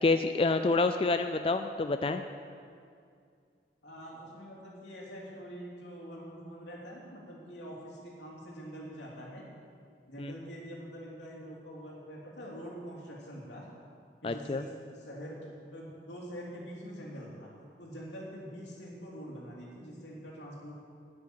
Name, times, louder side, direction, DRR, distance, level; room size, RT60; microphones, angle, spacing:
voice 1, 0.0-2.2 10.2-10.3 14.2-14.6, left 3 dB, 30° left, 8 dB, 0.3 m, -28 dB
voice 2, 3.8-9.4 10.1-13.7 14.2-17.5 17.8-20.7, equal, 85° left, -3 dB, 3.3 m, -45 dB
9.6 x 9.4 x 8.9 m, 2.3 s
head